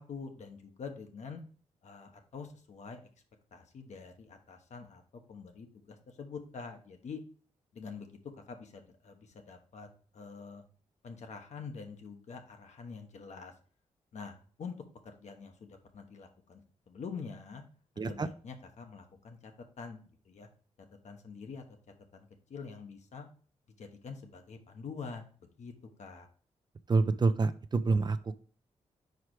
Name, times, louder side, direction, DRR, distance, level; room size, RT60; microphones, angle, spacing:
voice 1, 0.0-1.4 1.8-3.1 3.5-5.0 5.3-7.2 7.7-8.1 8.5-9.9 10.1-10.6 11.0-13.5 14.1-14.7 15.0-17.6 17.9-19.5 19.8-20.5 20.8-21.6 22.1-23.3 23.8-25.7 26.0-26.3, left 5 dB, 65° left, 5 dB, 1.1 m, -46 dB
voice 2, 18.0-18.3 26.9-28.2, right 3 dB, 35° right, 12 dB, 0.4 m, -27 dB
4.8 x 4.7 x 4.6 m, 0.42 s
cardioid pair, 90°, 13 cm